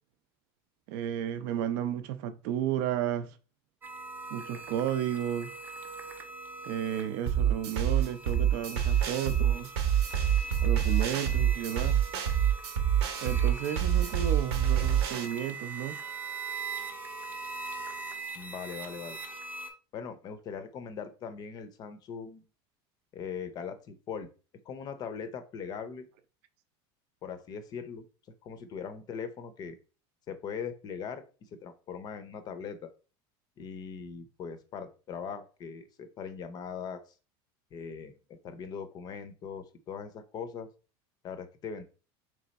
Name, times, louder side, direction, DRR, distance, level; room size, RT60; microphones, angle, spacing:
voice 1, 0.9-3.3 4.3-5.5 6.7-9.7 10.6-12.0 13.2-16.0, right 10 dB, 60° right, 0.5 m, -33 dB
sound 1, 3.8-19.7, right 3 dB, 15° right, 0.5 m, -41 dB
sound 2, 7.3-15.3, right 9 dB, 90° right, 0.8 m, -26 dB
voice 2, 18.4-19.2 19.9-22.4 23.1-24.3 24.7-26.1 27.2-28.0 28.4-29.8 30.3-31.2 31.6-32.9 33.6-37.0 37.7-38.1 38.4-40.7 41.2-41.8, left 6 dB, 30° left, 0.5 m, -40 dB
3.5 x 3.2 x 4.0 m
supercardioid pair, 160°, 13 cm